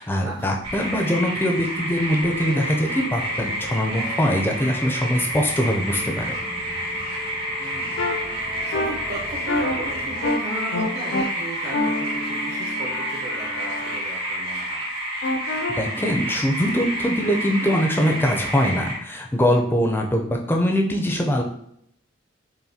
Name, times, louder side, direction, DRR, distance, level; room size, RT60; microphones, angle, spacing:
voice 1, 0.0-6.4 15.8-21.4, equal, 10° left, 1 dB, 0.4 m, -22 dB
sound 1, 0.6-18.9, equal, 90° right, 1.5 m, -29 dB
sound 2, 2.2-10.3, left 1 dB, 70° right, 1.4 m, -40 dB
voice 2, 7.6-8.0 8.3-14.9 20.4-20.7, right 1 dB, 55° right, -2 dB, 0.8 m, -37 dB
sound 3, 8.0-8.1 8.7-8.9 9.5-9.7 10.2-10.4 10.7-11.2 11.7-14.0 15.2-15.7, left 2 dB, 65° left, 0.5 m, -27 dB
5.6 x 2.2 x 2.7 m, 0.72 s
head